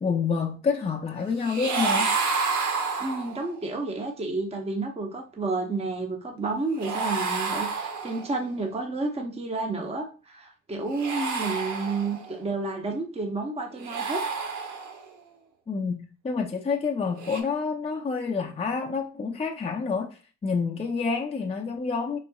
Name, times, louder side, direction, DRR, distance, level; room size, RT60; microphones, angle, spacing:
voice 1, 0.0-2.1 15.7-22.2, left 5 dB, 20° left, 0.5 m, -28 dB
sound 1, 1.4-3.6 6.8-8.4 10.8-12.4 13.7-15.1 17.1-17.4, right 4 dB, 70° right, 1.0 m, -29 dB
voice 2, 3.0-14.2, right 3 dB, 20° right, 0.8 m, -31 dB
4.7 x 4.1 x 2.3 m
cardioid pair, 90°, 30 cm